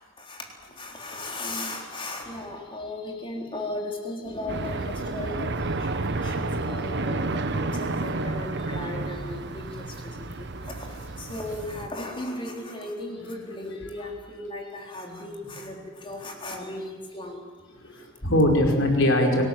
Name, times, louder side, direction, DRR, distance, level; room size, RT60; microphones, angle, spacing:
voice 1, 0.8-5.7 6.2-9.6 10.0-10.1 10.4-10.5 11.2-15.7 16.0-17.4, left 2 dB, 25° left, 1 dB, 3.7 m, -36 dB
sound 1, 4.5-11.9, right 2 dB, 55° right, 1.2 m, -30 dB
voice 2, 17.8-19.4, left 1 dB, 65° left, 2 dB, 5.1 m, -22 dB
28.5 x 19.0 x 7.6 m, 1.4 s
head